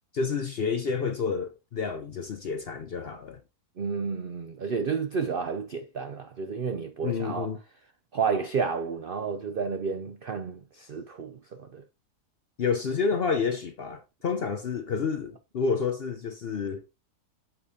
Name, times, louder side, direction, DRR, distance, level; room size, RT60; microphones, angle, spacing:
voice 1, 0.1-3.4 7.0-7.6 12.6-16.8, left 5 dB, 55° left, 0.7 m, -29 dB
voice 2, 3.8-7.5 8.1-11.8, right 5 dB, 75° right, 0.5 m, -31 dB
8.4 x 7.1 x 2.7 m
omnidirectional pair, 1.7 m